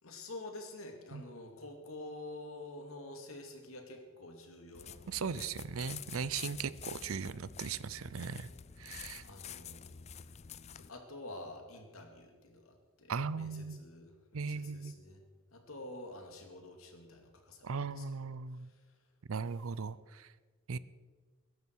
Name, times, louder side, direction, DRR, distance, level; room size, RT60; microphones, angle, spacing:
voice 1, 0.0-5.5 9.0-9.8 10.7-15.2 15.5-18.0, left 2 dB, 75° left, 3 dB, 2.5 m, -48 dB
sound 1, 4.7-10.9, left 8 dB, 30° left, 0.4 m, -48 dB
voice 2, 5.1-8.5 8.8-9.2 13.1-13.8 14.3-14.9 17.6-18.7 19.3-20.3 20.7-20.8, right 5 dB, 70° right, 17 dB, 0.5 m, -38 dB
21.0 x 11.0 x 4.7 m, 1.4 s
head